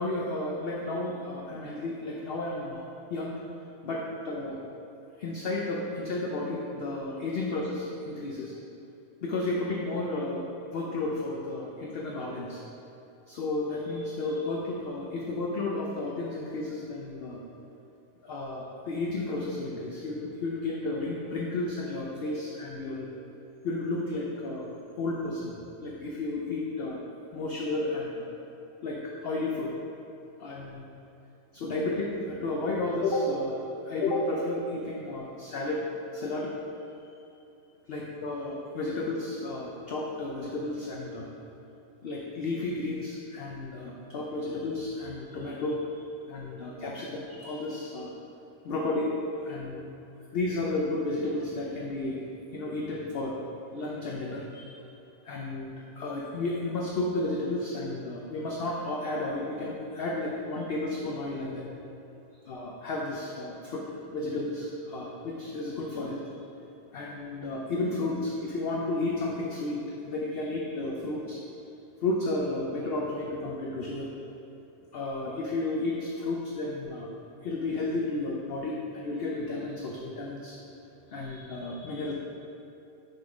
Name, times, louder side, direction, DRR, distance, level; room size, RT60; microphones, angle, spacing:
voice 1, 0.0-3.3 3.8-4.6 5.2-8.5 9.2-10.4 10.7-12.6 13.3-17.4 18.2-23.1 23.6-24.6 25.0-25.5 25.8-27.0 27.3-28.3 28.8-29.7 30.4-30.8 31.5-35.9 36.1-36.5 37.9-41.3 42.0-48.1 48.6-49.9 50.3-52.2 52.5-53.3 53.7-54.9 55.2-61.7 62.5-66.4 66.9-71.4 72.0-74.1 74.9-77.1 77.4-80.6 81.1-82.1, left 2 dB, 55° left, -2 dB, 0.7 m, -32 dB
6.7 x 4.1 x 4.9 m, 2.8 s
omnidirectional pair, 1.5 m